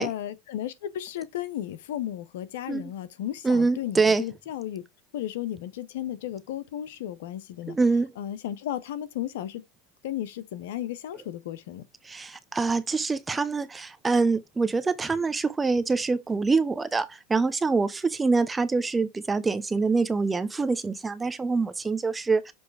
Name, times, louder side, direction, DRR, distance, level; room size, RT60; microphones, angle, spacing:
voice 1, 0.0-4.8 5.1-7.8 8.2-9.6 10.0-11.8, left 12 dB, 80° left, 0.7 m, -34 dB
voice 2, 3.4-4.2 7.7-8.1 12.0-22.5, right 4 dB, 15° right, 0.8 m, -25 dB
7.1 x 3.1 x 4.7 m
hypercardioid pair, 105°, 0 cm